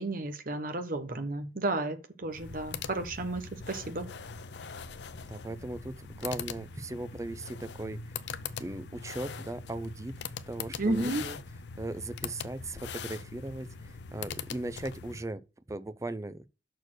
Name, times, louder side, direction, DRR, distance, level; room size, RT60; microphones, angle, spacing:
voice 1, 0.0-4.1 10.8-11.2, right 2 dB, 50° right, 1.1 m, -32 dB
sound 1, 2.3-15.3, left 5 dB, 70° left, 0.6 m, -42 dB
voice 2, 5.3-8.0 8.6-10.1 10.5-11.4 11.8-15.4 15.7-16.5, right 2 dB, 15° right, 0.5 m, -38 dB
6.5 x 4.4 x 6.2 m
head